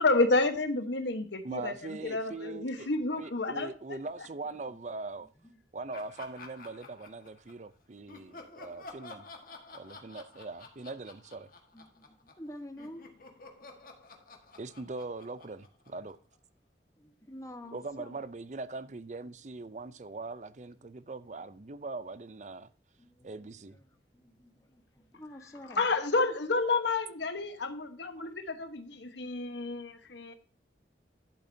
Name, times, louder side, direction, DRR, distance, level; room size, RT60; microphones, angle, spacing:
voice 1, 0.0-4.0 25.8-30.3, left 3 dB, 85° left, 1.2 m, -30 dB
voice 2, 1.4-2.9 3.2-5.3 5.7-9.3 9.7-11.5 14.6-16.2 17.7-22.7 23.2-23.8 28.2-28.3, right 3 dB, 40° right, 0.5 m, -41 dB
Laughter, 5.9-7.7 8.1-12.5 12.8-16.4, left 3 dB, 50° left, 1.7 m, -51 dB
voice 3, 11.7-13.1 17.0-18.2 20.8-20.9 23.0-23.8 24.1-25.9 29.0-29.4, left 1 dB, 20° left, 1.2 m, -49 dB
11.5 x 7.7 x 2.7 m
head